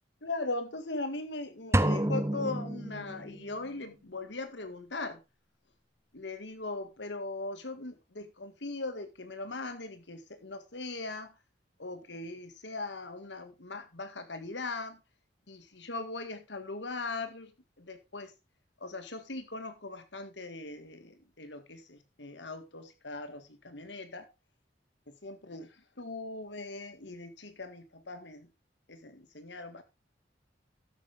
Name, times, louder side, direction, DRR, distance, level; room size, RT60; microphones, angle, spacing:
voice 1, 0.2-5.2 6.1-11.3 11.8-15.0 15.5-17.5 17.8-18.3 18.8-24.3 25.1-28.5 28.9-29.8, left 3 dB, 80° left, 1.9 m, -39 dB
sound 1, 1.7-3.5, right 1 dB, 15° right, 0.7 m, -29 dB
12.5 x 8.2 x 3.5 m
head